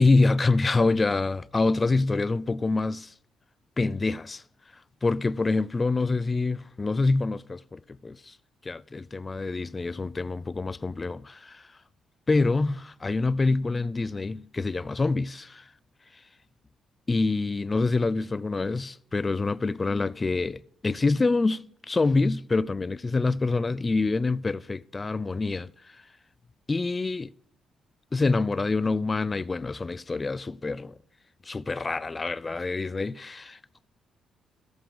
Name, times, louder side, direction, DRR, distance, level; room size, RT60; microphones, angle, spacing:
voice 1, 0.0-3.1 3.8-4.4 5.0-8.3 8.6-11.7 12.3-15.6 17.1-25.7 26.7-27.3 28.1-30.9 31.5-33.8, left 3 dB, 25° left, 0.4 m, -26 dB
13.5 x 8.0 x 5.0 m
cardioid pair, 90°, 0 cm